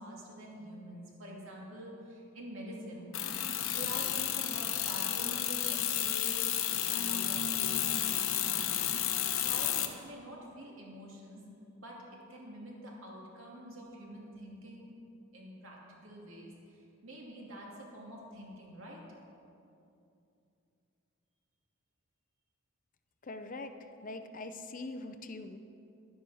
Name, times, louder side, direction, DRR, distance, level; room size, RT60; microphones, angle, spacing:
voice 1, 0.0-3.1 3.7-6.4 6.7-8.7 9.0-9.1 9.4-9.8 10.0-11.4 11.8-12.0 12.3-14.9 15.3-19.0, right 1 dB, 75° right, -2 dB, 2.7 m, -47 dB
sound 1, 3.1-9.9, left 10 dB, 80° left, 0.9 m, -32 dB
voice 2, 23.2-23.7 24.0-25.6, left 2 dB, 40° left, 8 dB, 0.6 m, -42 dB
11.0 x 10.0 x 6.3 m, 2.7 s
head